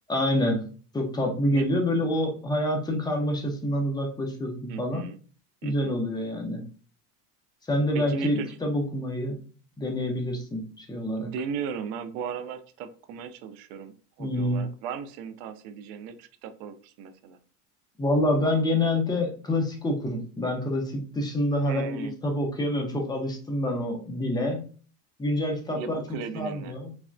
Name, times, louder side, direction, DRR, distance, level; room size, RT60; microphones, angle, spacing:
voice 1, 0.1-0.6 0.9-5.1 5.6-6.6 7.6-9.4 9.8-11.3 14.2-14.6 18.0-24.7 25.2-26.0 26.3-26.9, left 1 dB, 10° left, 2 dB, 0.5 m, -27 dB
voice 2, 4.7-5.2 5.6-6.0 7.9-8.6 11.2-17.4 21.6-22.2 25.8-26.8, right 6 dB, 70° right, 10 dB, 0.6 m, -36 dB
3.3 x 2.1 x 2.4 m, 0.41 s
supercardioid pair, 105°, 48 cm